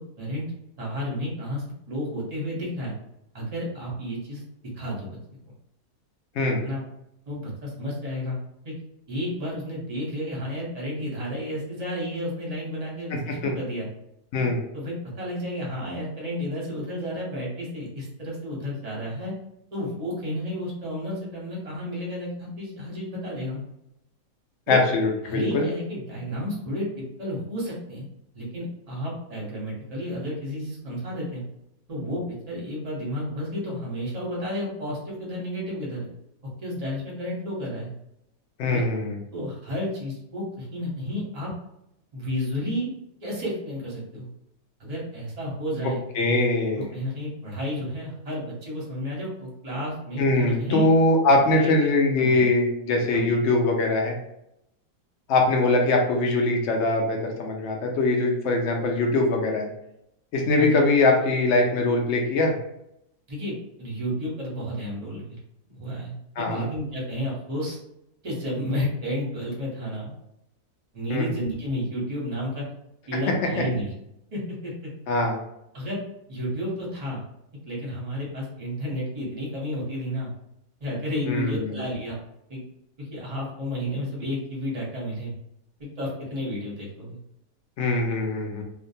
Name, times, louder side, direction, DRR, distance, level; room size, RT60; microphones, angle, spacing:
voice 1, 0.8-2.9 3.3-4.4 4.8-5.1 6.6-6.8 7.3-8.4 8.6-8.7 9.1-13.9 14.7-19.3 19.7-23.6 24.7-24.8 25.3-28.1 28.3-31.4 31.9-36.1 36.6-37.9 38.6-38.8 39.3-41.5 42.1-42.9 43.2-44.3 44.8-46.0 46.8-50.9 51.5-51.9 52.1-52.5 53.1-53.4 60.6-60.8 63.3-65.3 65.7-67.8 68.2-70.1 70.9-72.6 73.1-73.9 74.3-74.9 75.7-76.0 76.3-77.2 77.7-80.3 80.8-82.2 82.5-82.6 83.0-85.3 85.8-87.2, equal, 35° right, -4 dB, 0.7 m, -31 dB
voice 2, 13.1-13.5 14.3-14.6 24.7-25.7 38.6-39.2 46.2-46.9 50.2-54.2 55.3-59.7 60.3-62.5 66.4-66.7 71.1-71.3 75.1-75.4 81.3-81.8 87.8-88.6, left 2 dB, 75° left, 1 dB, 0.6 m, -22 dB
2.5 x 2.2 x 2.6 m, 0.81 s
omnidirectional pair, 1.7 m